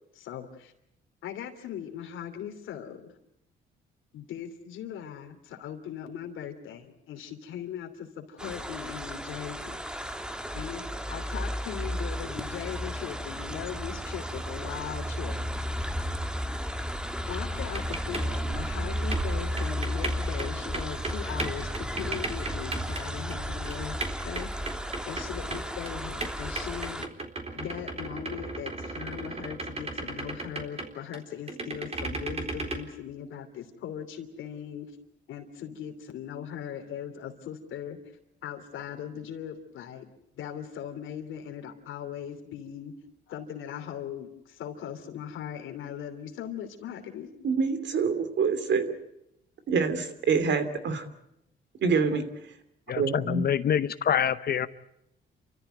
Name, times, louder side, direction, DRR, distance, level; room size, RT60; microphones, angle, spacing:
voice 1, 0.1-0.7 1.2-3.1 4.1-9.8 10.5-15.4 17.3-24.0 24.2-24.5 25.1-27.1 27.5-34.9 35.3-38.0 38.4-40.1 40.4-42.9 43.3-47.3, left 9 dB, 80° left, 4 dB, 3.0 m, -39 dB
sound 1, 8.4-27.1, equal, 5° right, 1.4 m, -33 dB
sound 2, 17.7-23.0 23.3-23.4 23.7-25.9 26.2-31.2 31.5-32.8, right 3 dB, 30° right, 3.8 m, -36 dB
voice 2, 47.4-48.9 49.7-51.1 51.8-52.2 53.0-53.5, right 5 dB, 65° right, 10 dB, 2.8 m, -26 dB
voice 3, 52.9-54.7, left 8 dB, 50° left, 14 dB, 0.8 m, -26 dB
29.5 x 14.0 x 9.2 m, 0.80 s
cardioid pair, 90°, 20 cm